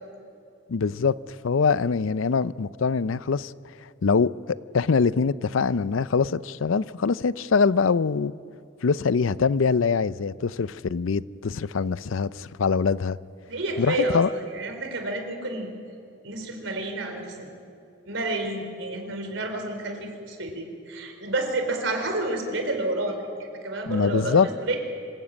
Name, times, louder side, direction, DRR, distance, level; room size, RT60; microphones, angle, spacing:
voice 1, 0.7-1.2 1.4-3.5 4.0-8.3 8.8-13.2 13.8-14.3 23.9-24.5, left 5 dB, 90° left, 0.5 m, -23 dB
voice 2, 13.5-15.7 16.2-17.5 18.1-24.8, right 2 dB, 75° right, 3.9 m, -30 dB
26.0 x 15.0 x 8.8 m
head